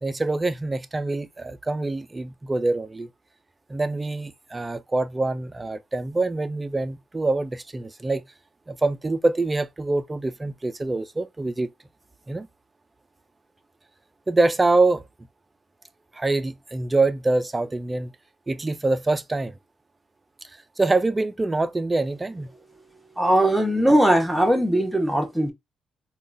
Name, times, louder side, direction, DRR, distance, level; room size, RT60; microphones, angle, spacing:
voice 1, 0.0-3.1 3.7-8.2 8.7-11.7 12.3-12.5 14.3-15.0 16.1-18.1 18.5-19.6 20.8-22.5, right 2 dB, 20° right, 0.4 m, -25 dB
voice 2, 23.2-25.5, right 1 dB, 5° right, 0.9 m, -19 dB
3.6 x 2.3 x 2.5 m
cardioid pair, 90°, 0 cm